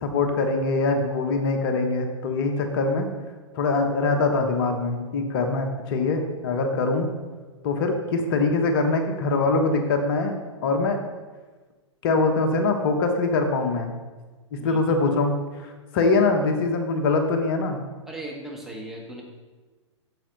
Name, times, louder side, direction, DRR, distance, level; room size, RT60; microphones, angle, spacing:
voice 1, 0.0-3.1 3.5-7.1 7.6-10.3 10.6-11.0 12.0-14.0 14.5-15.4 15.6-17.8, left 3 dB, 45° left, 4 dB, 1.3 m, -23 dB
voice 2, 18.1-19.2, right 1 dB, ahead, -2 dB, 1.7 m, -37 dB
8.9 x 7.6 x 4.1 m, 1.3 s
figure-of-eight pair, 110°, 16 cm